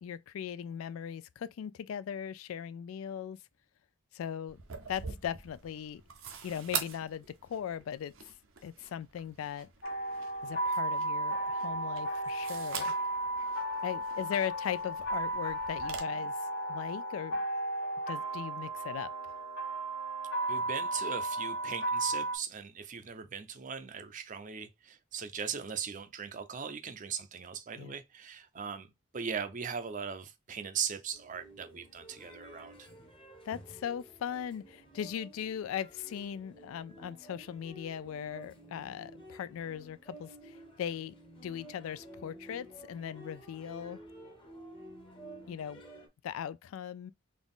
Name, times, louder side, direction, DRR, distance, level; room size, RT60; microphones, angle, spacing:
voice 1, 0.0-3.4 4.1-4.6 4.9-6.0 6.4-8.1 8.6-9.7 10.4-12.9 13.8-16.3 16.7-17.4 18.1-19.1 27.8-27.9 33.4-41.1 41.4-44.0 45.5-45.8 46.2-47.1, left 8 dB, 80° left, 0.3 m, -39 dB
sound 1, 4.5-16.0, right 7 dB, 75° right, 0.7 m, -45 dB
sound 2, 9.8-22.4, right 1 dB, 55° left, 0.9 m, -34 dB
voice 2, 20.5-32.9, right 7 dB, 40° right, 0.5 m, -39 dB
sound 3, 31.1-46.1, right 1 dB, 25° left, 0.8 m, -52 dB
3.9 x 2.4 x 3.5 m
head